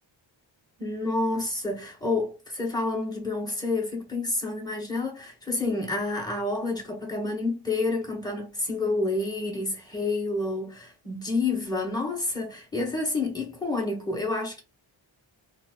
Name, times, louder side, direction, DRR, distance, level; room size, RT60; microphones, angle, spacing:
voice 1, 0.8-14.6, left 2 dB, 10° left, 1.6 m, -29 dB
4.0 x 2.1 x 3.9 m
wide cardioid pair, 85°, 47 cm